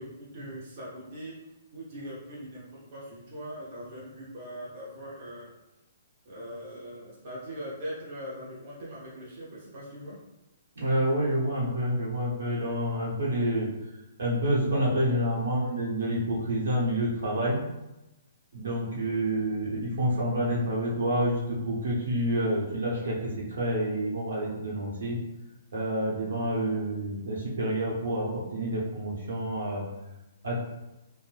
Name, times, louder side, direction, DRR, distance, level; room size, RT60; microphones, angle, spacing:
voice 1, 0.0-1.3 1.7-5.5 6.3-10.2, equal, 30° right, -7 dB, 0.6 m, -41 dB
voice 2, 10.8-13.7 14.2-17.6 18.5-25.2 25.7-29.9 30.4-30.6, right 1 dB, 70° right, -4 dB, 1.0 m, -28 dB
2.5 x 2.1 x 3.2 m, 0.97 s
hypercardioid pair, 175°, 0 cm